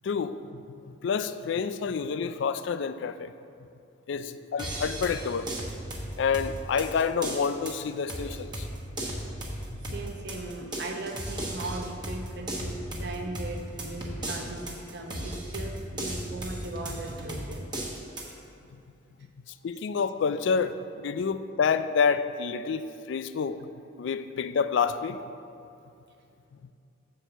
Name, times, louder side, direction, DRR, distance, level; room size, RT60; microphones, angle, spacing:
voice 1, 0.0-0.6 1.0-3.3 4.1-5.5 6.2-8.7 19.5-23.7 24.0-25.2, left 6 dB, 65° left, 12 dB, 0.3 m, -28 dB
sound 1, 4.6-18.3, right 1 dB, 25° right, 1.2 m, -36 dB
voice 2, 9.9-17.7, right 2 dB, 60° right, 3 dB, 0.8 m, -38 dB
7.6 x 4.6 x 6.7 m, 2.6 s
head